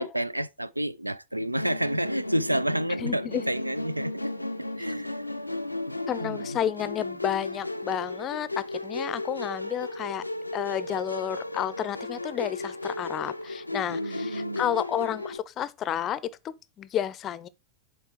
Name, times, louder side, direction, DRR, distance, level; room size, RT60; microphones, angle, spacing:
voice 1, 0.0-4.3 4.8-6.6 13.9-14.8, right 1 dB, 85° right, 0.3 m, -30 dB
Musical instrument, 1.6-15.4, left 2 dB, 85° left, 0.4 m, -35 dB
voice 2, 3.0-3.4 6.1-10.2 10.5-17.5, left 10 dB, 30° left, 0.5 m, -31 dB
7.3 x 4.5 x 4.8 m
figure-of-eight pair, 90°, 0 cm